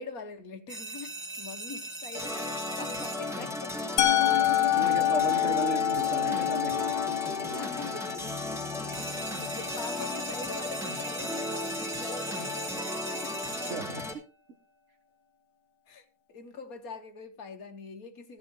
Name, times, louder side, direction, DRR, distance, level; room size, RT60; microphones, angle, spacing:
voice 1, 0.0-3.9 5.3-5.5 7.6-8.2 9.4-13.4 15.9-18.4, left 4 dB, 60° left, 1.6 m, -43 dB
sound 1, 0.7-3.6 8.9-14.1, right 2 dB, 20° right, 1.1 m, -40 dB
sound 2, 2.1-14.1, left 2 dB, ahead, 2.4 m, -35 dB
Musical instrument, 4.0-9.9, left 13 dB, 75° left, 1.5 m, -27 dB
voice 2, 4.8-6.9 7.3-7.6 13.6-14.3, right 4 dB, 45° right, 1.3 m, -35 dB
15.0 x 9.2 x 3.8 m
omnidirectional pair, 1.8 m